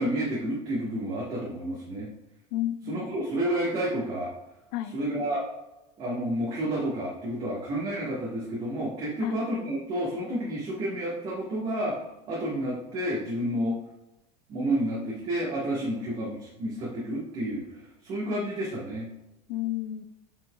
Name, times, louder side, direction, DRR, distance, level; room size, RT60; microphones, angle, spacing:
voice 1, 0.0-2.1 2.9-4.3 4.9-5.4 6.0-12.0 12.3-13.8 14.5-19.1, right 1 dB, 40° right, -5 dB, 1.6 m, -30 dB
voice 2, 2.5-3.1 4.7-4.9 9.2-9.4 15.9-16.0 19.5-20.0, left 13 dB, 85° left, 11 dB, 0.6 m, -32 dB
7.7 x 6.0 x 2.4 m, 0.94 s
cardioid pair, 165°, 15 cm